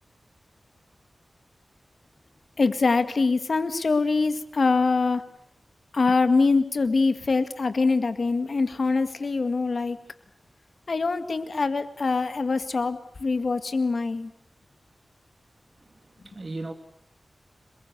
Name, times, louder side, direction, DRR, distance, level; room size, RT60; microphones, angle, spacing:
voice 1, 2.6-5.3 5.9-10.0 10.9-14.3, left 4 dB, 60° left, 1.9 m, -24 dB
voice 2, 15.8-16.7, right 2 dB, 40° right, 2.2 m, -37 dB
28.0 x 21.5 x 8.2 m
wide cardioid pair, 105°, 0 cm